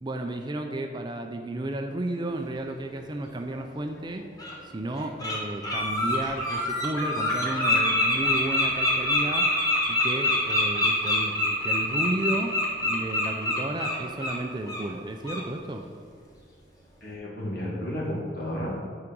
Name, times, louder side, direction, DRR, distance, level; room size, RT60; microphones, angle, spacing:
voice 1, 0.0-4.3 4.6-9.5 9.9-15.9, right 1 dB, 25° right, 4 dB, 0.5 m, -33 dB
Bird, 3.6-3.7 4.4-4.5 5.0-5.4 5.6-14.4 14.7-14.9 15.2-15.4, left 1 dB, 20° left, 1.3 m, -25 dB
voice 2, 17.0-19.0, equal, 55° left, -4 dB, 2.1 m, -32 dB
9.7 x 4.9 x 5.3 m, 2.1 s
head